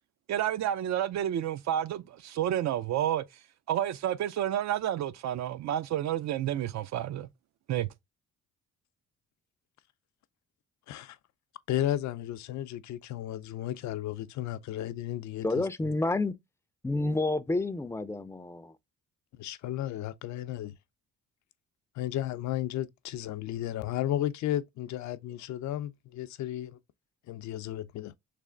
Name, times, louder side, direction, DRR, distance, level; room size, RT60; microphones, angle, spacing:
voice 1, 0.3-3.2 3.7-7.3 7.7-7.9, right 11 dB, 65° right, 0.5 m, -30 dB
voice 2, 11.7-15.4 19.4-20.7 22.0-26.8 27.3-28.1, left 12 dB, 70° left, 0.5 m, -33 dB
voice 3, 15.4-16.3 16.8-18.8, left 2 dB, 10° left, 0.4 m, -29 dB
3.3 x 3.1 x 3.7 m
cardioid pair, 90°, 30 cm